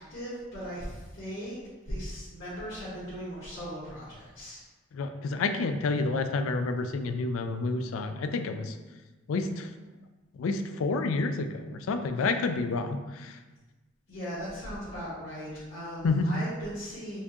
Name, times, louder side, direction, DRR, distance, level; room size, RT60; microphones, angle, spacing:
voice 1, 0.0-1.6 1.8-4.6 12.2-12.3 14.1-17.2, equal, 65° left, -10 dB, 1.2 m, -38 dB
voice 2, 4.9-8.7 9.3-9.7 10.4-13.3 16.0-16.3, left 3 dB, 85° left, 8 dB, 0.3 m, -29 dB
4.4 x 2.3 x 2.8 m, 1.2 s
head